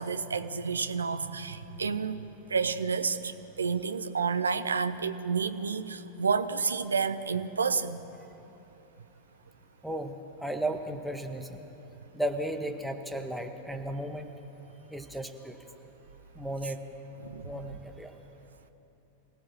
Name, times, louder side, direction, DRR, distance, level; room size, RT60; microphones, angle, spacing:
voice 1, 0.0-8.0 17.2-17.5, right 5 dB, 75° right, 11 dB, 1.0 m, -30 dB
voice 2, 9.8-11.7 12.1-14.3 14.9-15.8 16.4-16.8 17.4-18.2, right 1 dB, ahead, 4 dB, 1.7 m, -35 dB
25.5 x 17.0 x 7.4 m, 3.0 s
figure-of-eight pair, 90°, 0 cm